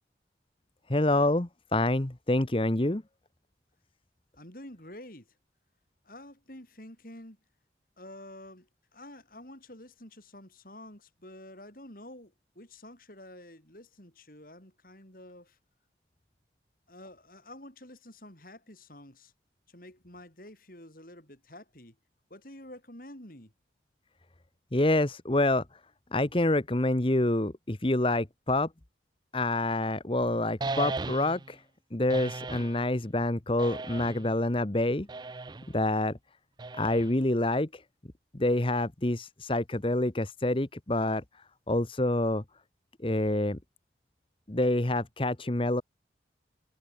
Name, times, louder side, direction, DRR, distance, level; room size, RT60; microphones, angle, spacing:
voice 1, 0.9-3.0 24.7-25.6 26.1-28.7 29.3-31.6 31.9-35.1 35.7-36.2 36.8-37.8 38.3-41.2 41.7-42.4 43.0-43.6 44.5-45.8, left 1 dB, 30° left, 1.1 m, -27 dB
voice 2, 4.4-5.3 6.0-7.4 8.0-15.6 16.9-19.3 19.7-22.0 22.3-23.5, left 1 dB, 50° left, 5.8 m, -49 dB
sound 1, 30.6-31.5 32.1-32.8 33.6-34.3 35.1-35.7 36.6-37.3, right 3 dB, 25° right, 0.4 m, -36 dB
head